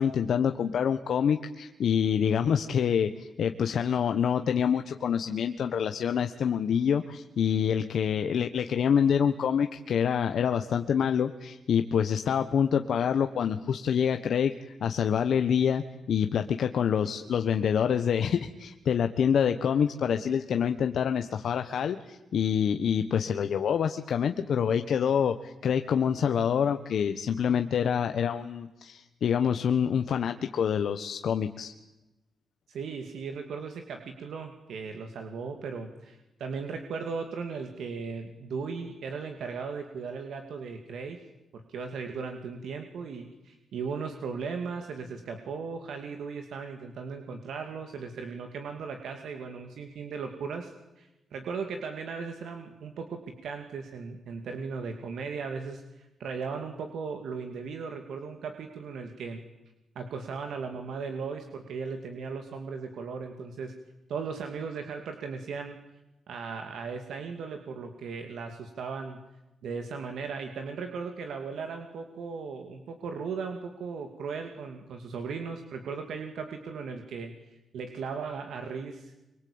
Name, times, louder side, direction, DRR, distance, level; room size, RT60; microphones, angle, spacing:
voice 1, 0.0-31.7, left 8 dB, 65° left, 7 dB, 1.3 m, -26 dB
voice 2, 32.7-41.2 41.5-59.4 59.9-63.7 64.1-65.8 66.3-69.2 69.6-79.1, right 5 dB, 80° right, 5 dB, 2.7 m, -37 dB
25.5 x 24.0 x 8.9 m, 0.99 s
wide cardioid pair, 140°, 0 cm